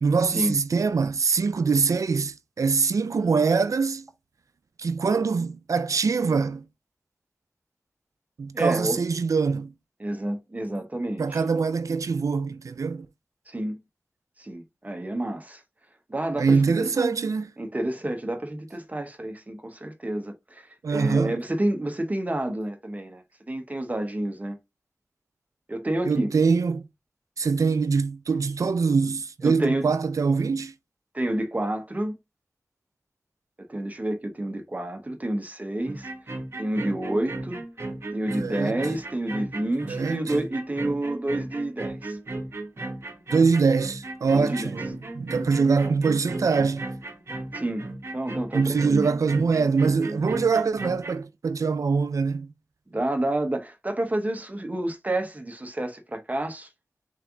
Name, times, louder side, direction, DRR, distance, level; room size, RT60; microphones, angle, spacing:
voice 1, 0.0-4.1 4.8-6.6 8.4-9.7 11.2-13.1 16.4-17.5 20.8-21.4 26.0-26.9 27.4-30.7 38.4-38.8 39.9-40.3 43.3-46.9 48.5-52.5, right 5 dB, 85° right, 0.4 m, -23 dB
voice 2, 8.5-9.0 10.0-11.4 13.5-13.8 14.4-15.6 16.1-17.1 17.6-24.6 25.7-26.3 29.4-29.9 31.1-32.1 33.7-36.1 36.6-37.6 38.1-42.2 44.3-44.8 47.5-47.9 48.1-49.1 52.9-56.7, right 1 dB, 30° right, 0.9 m, -29 dB
sound 1, 35.9-51.2, right 2 dB, 50° right, 1.0 m, -35 dB
3.5 x 3.3 x 3.7 m
wide cardioid pair, 70°, 5 cm